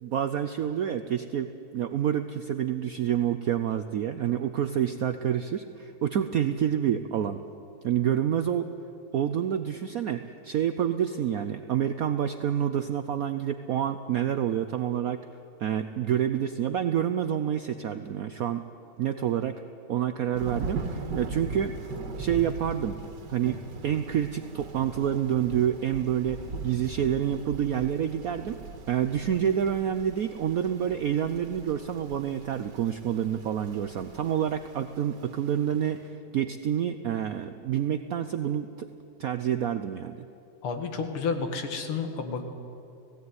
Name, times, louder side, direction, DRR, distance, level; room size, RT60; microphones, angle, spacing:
voice 1, 0.0-7.4 7.8-8.7 9.1-15.2 15.6-18.6 19.0-19.6 19.9-21.8 22.2-23.0 23.3-28.6 28.9-38.9 39.2-40.2, right 9 dB, 90° right, 10 dB, 0.7 m, -28 dB
Thunder / Rain, 20.3-35.9, right 3 dB, 55° right, 2.0 m, -40 dB
voice 2, 40.6-42.4, left 5 dB, 85° left, 6 dB, 2.5 m, -30 dB
17.0 x 17.0 x 9.5 m, 2.8 s
omnidirectional pair, 2.3 m